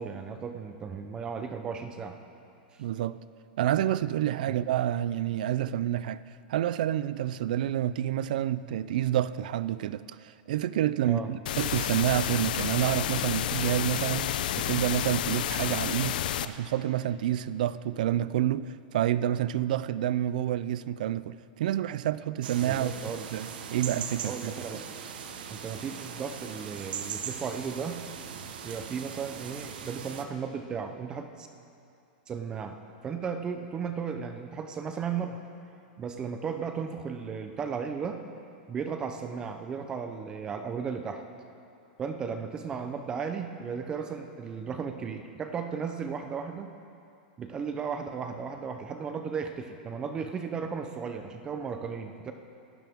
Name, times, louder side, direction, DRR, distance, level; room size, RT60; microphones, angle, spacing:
voice 1, 0.0-2.2 2.7-2.8 4.5-4.6 11.0-11.3 22.6-23.3 24.2-24.8 25.5-28.0 28.6-31.5 32.3-32.8 33.0-35.4 36.0-38.2 38.7-41.2 42.0-46.7 47.4-52.3, right 6 dB, 15° right, 0.6 m, -35 dB
voice 2, 2.8-3.2 3.6-6.2 6.5-22.9 23.3-24.5, right 12 dB, 60° right, 0.4 m, -28 dB
sound 1, 11.5-16.5, left 11 dB, 70° left, 0.6 m, -30 dB
sound 2, 22.4-30.2, right 7 dB, 85° right, 1.3 m, -40 dB
25.0 x 12.0 x 3.6 m
supercardioid pair, 170°, 5 cm